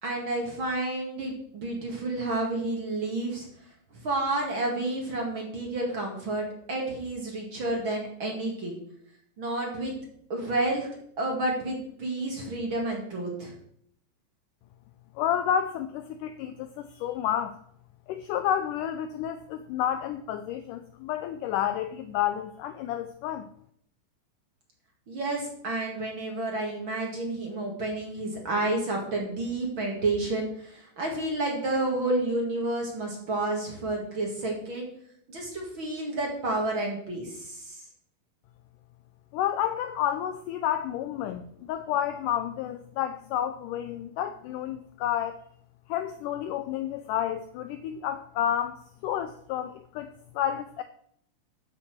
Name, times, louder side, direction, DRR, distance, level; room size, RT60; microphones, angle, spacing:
voice 1, 0.0-3.5 4.0-8.8 9.4-9.9 10.3-10.9 11.2-13.5 25.1-34.9 35.3-37.8, right 2 dB, 40° right, 0 dB, 2.3 m, -30 dB
voice 2, 15.2-17.6 18.1-23.5 39.3-45.4 45.9-50.8, left 10 dB, 85° left, 10 dB, 1.8 m, -30 dB
13.5 x 5.7 x 6.0 m, 0.68 s
omnidirectional pair, 4.3 m